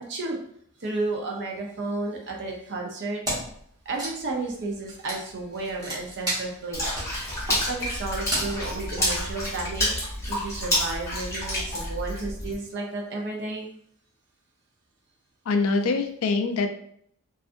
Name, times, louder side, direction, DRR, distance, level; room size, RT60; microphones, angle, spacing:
voice 1, 0.8-3.2 3.9-13.7, right 3 dB, 50° right, 0 dB, 0.6 m, -32 dB
Wood, 3.2-3.6 3.9-9.5, right 1 dB, 15° right, 0.9 m, -33 dB
Water / Splash splatter, 6.7-12.5, left 1 dB, 15° left, 0.9 m, -29 dB
voice 2, 15.5-16.7, left 3 dB, 65° left, 7 dB, 0.3 m, -24 dB
2.5 x 2.4 x 2.5 m, 0.67 s
head